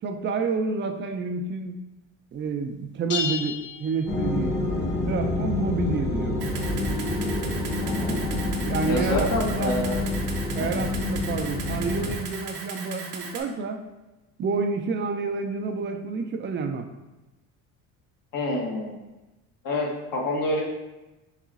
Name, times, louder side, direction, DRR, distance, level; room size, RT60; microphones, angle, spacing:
voice 1, 0.0-1.8 2.3-4.5 5.1-6.4 8.6-9.8 10.6-13.8 14.4-16.9, right 4 dB, 30° right, 6 dB, 0.4 m, -29 dB
sound 1, 3.1-4.7, left 7 dB, 30° left, 0.5 m, -32 dB
sound 2, 4.1-12.2, left 2 dB, 10° left, 0.8 m, -27 dB
Camera, 6.4-13.4, right 5 dB, 75° right, 0.8 m, -38 dB
voice 2, 7.8-8.2 8.9-10.0 10.6-10.9 18.3-18.9 19.6-20.6, left 1 dB, 60° left, -2 dB, 1.3 m, -27 dB
4.0 x 3.6 x 2.4 m, 1.0 s
supercardioid pair, 95°, 38 cm